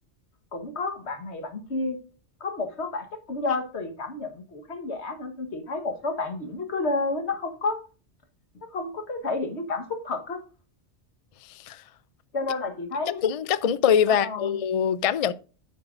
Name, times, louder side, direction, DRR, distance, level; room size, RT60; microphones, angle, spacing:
voice 1, 0.5-2.0 2.4-7.8 8.7-10.4 12.3-13.2 14.1-14.6, left 3 dB, 70° left, 1.7 m, -30 dB
voice 2, 13.2-15.3, left 8 dB, 55° left, 0.4 m, -23 dB
9.8 x 8.5 x 2.6 m
omnidirectional pair, 1.2 m